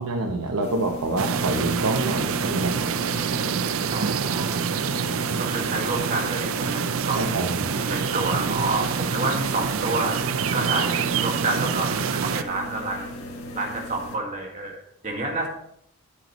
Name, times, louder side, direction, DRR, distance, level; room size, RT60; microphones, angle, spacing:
voice 1, 0.0-2.9 7.1-7.6, right 2 dB, 90° right, 2 dB, 0.9 m, -27 dB
sound 1, 0.6-14.2, left 1 dB, 85° left, 1.5 m, -37 dB
sound 2, 1.2-12.4, right 6 dB, 70° right, 0.5 m, -26 dB
voice 2, 3.9-4.8 5.4-13.1 13.5-15.5, right 2 dB, 35° right, 0 dB, 1.9 m, -29 dB
10.0 x 8.2 x 3.1 m, 0.71 s
head